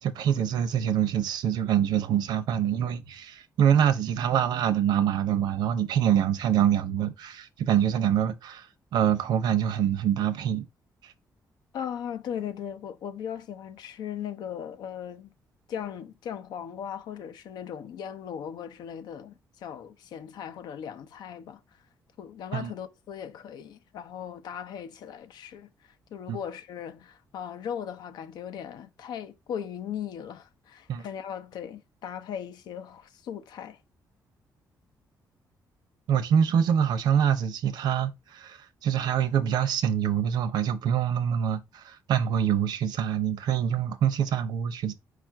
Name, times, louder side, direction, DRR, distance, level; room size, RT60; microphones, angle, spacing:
voice 1, 0.0-10.7 11.0-11.1 22.5-22.7 26.3-26.4 30.9-31.1 36.1-44.9, right 9 dB, 90° right, 0.7 m, -25 dB
voice 2, 11.7-15.3 15.7-21.6 22.2-33.8, left 8 dB, 85° left, 0.6 m, -38 dB
4.7 x 2.5 x 4.5 m
cardioid pair, 160°, 7 cm